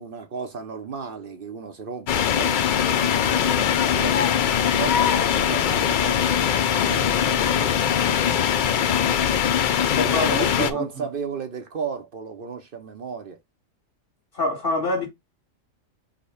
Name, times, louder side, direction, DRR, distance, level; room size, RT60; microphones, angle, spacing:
voice 1, 0.0-4.4 4.7-6.4 6.7-9.3 9.9-13.4, right 6 dB, 50° right, 0.7 m, -35 dB
sound 1, 2.1-10.7, left 8 dB, 90° left, 0.4 m, -21 dB
sound 2, 3.0-8.4, left 8 dB, 65° left, 0.7 m, -32 dB
voice 2, 9.9-11.1 14.3-15.1, left 2 dB, 40° left, 1.9 m, -26 dB
4.9 x 2.1 x 4.8 m
omnidirectional pair, 1.4 m